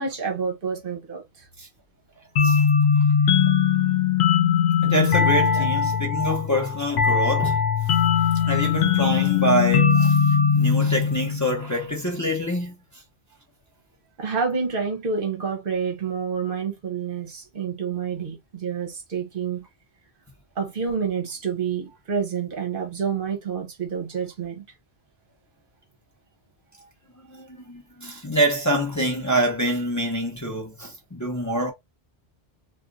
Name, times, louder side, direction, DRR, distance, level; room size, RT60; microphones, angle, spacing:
voice 1, 0.0-1.5 5.5-5.7 8.4-8.5 14.2-19.7 20.6-24.7, right 6 dB, 60° right, 0.9 m, -28 dB
sound 1, 2.4-11.7, left 7 dB, 80° left, 0.9 m, -20 dB
voice 2, 4.8-7.7 8.5-12.8 27.1-31.7, equal, 20° left, 0.7 m, -26 dB
2.4 x 2.4 x 3.8 m
omnidirectional pair, 1.1 m